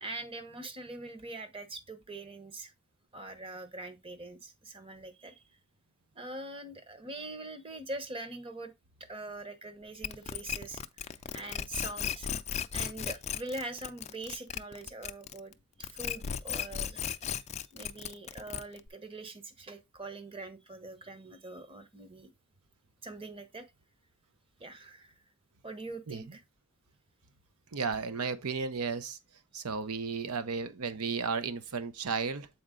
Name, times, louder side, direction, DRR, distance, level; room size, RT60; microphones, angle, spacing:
voice 1, 0.0-2.7 3.1-5.5 6.1-8.7 9.1-12.3 12.7-15.5 15.8-17.1 17.7-22.3 23.0-23.6 24.6-25.1 25.6-26.4 27.9-28.0, right 2 dB, 25° right, 1.1 m, -43 dB
sound 1, 10.0-15.5 15.8-18.9, left 8 dB, 30° left, 0.4 m, -36 dB
voice 2, 27.7-29.2 29.5-32.5, right 5 dB, 90° right, 0.7 m, -34 dB
7.8 x 4.3 x 3.7 m
head